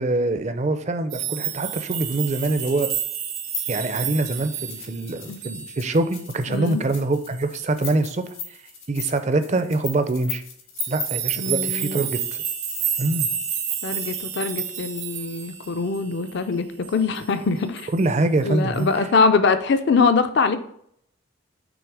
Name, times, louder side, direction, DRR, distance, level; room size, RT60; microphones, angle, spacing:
voice 1, 0.0-2.9 3.7-8.3 8.9-10.4 10.9-12.2 13.0-13.3 17.9-18.9, right 2 dB, 35° right, 0.4 m, -24 dB
sound 1, 1.1-6.1 6.4-6.7 7.3-7.6 10.8-16.4 16.8-17.3 17.8-18.1 18.7-18.9, right 10 dB, 80° right, 0.8 m, -30 dB
sound 2, 2.1-15.7, left 7 dB, 70° left, 1.7 m, -38 dB
voice 2, 6.5-6.8 11.4-12.1 13.8-16.7 16.9-17.9 18.4-20.6, left 4 dB, 55° left, 0.4 m, -22 dB
6.2 x 3.2 x 4.7 m
head